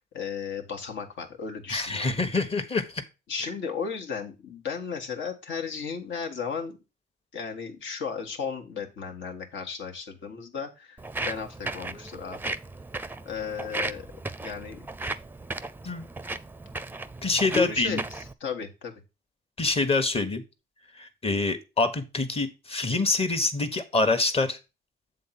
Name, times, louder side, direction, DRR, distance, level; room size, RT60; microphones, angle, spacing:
voice 1, 0.1-2.2 3.3-6.8 7.3-11.0 11.3-12.5 13.3-14.1 14.4-14.9 17.5-19.0, left 5 dB, 70° left, 3 dB, 1.7 m, -34 dB
voice 2, 1.7-3.0 15.8-16.0 17.2-18.0 19.6-20.4 21.0-24.6, left 3 dB, 30° left, 9 dB, 1.3 m, -26 dB
Walk footsteps, 11.0-18.3, right 2 dB, 10° right, 0.5 m, -36 dB
7.6 x 3.8 x 5.8 m, 0.28 s
cardioid pair, 90°, 20 cm